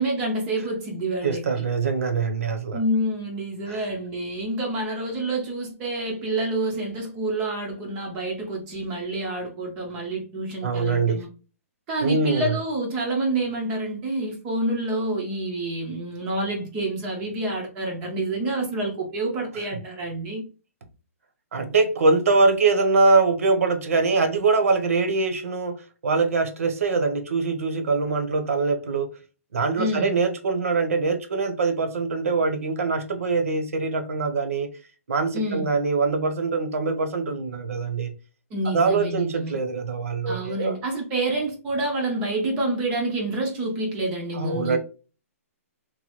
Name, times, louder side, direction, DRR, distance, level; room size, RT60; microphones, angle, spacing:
voice 1, 0.0-1.6 2.7-11.3 11.9-20.5 29.8-30.2 35.3-35.7 38.5-39.6 40.3-44.8, right 2 dB, 10° right, 0.3 m, -28 dB
voice 2, 1.2-2.8 3.7-3.8 10.6-11.2 12.0-12.6 21.5-29.1 29.5-34.7 35.1-38.1 38.7-40.8 44.3-44.8, right 4 dB, 70° right, 0.7 m, -23 dB
3.0 x 2.2 x 2.8 m
hypercardioid pair, 180°, 8 cm